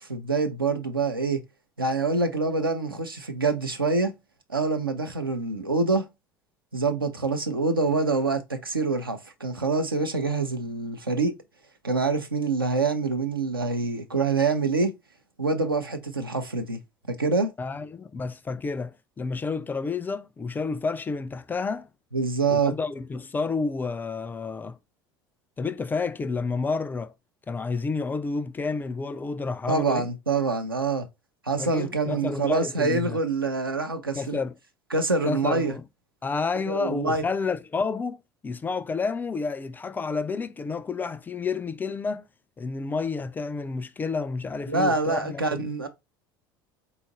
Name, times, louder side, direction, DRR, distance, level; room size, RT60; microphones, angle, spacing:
voice 1, 0.1-1.4 1.8-4.1 4.5-6.1 6.7-11.3 11.8-14.9 15.4-16.8 17.1-17.5 22.1-22.7 29.7-31.1 31.5-34.4 34.9-35.7 36.7-37.2 44.7-45.9, right 3 dB, 85° right, 0.6 m, -25 dB
voice 2, 17.6-21.9 22.5-24.8 25.6-27.1 27.5-30.1 31.6-33.2 34.2-34.5 35.2-35.8 36.2-38.2 38.4-42.2 42.6-45.6, left 4 dB, 15° left, 0.3 m, -30 dB
3.9 x 2.4 x 3.9 m
figure-of-eight pair, 70°, 12 cm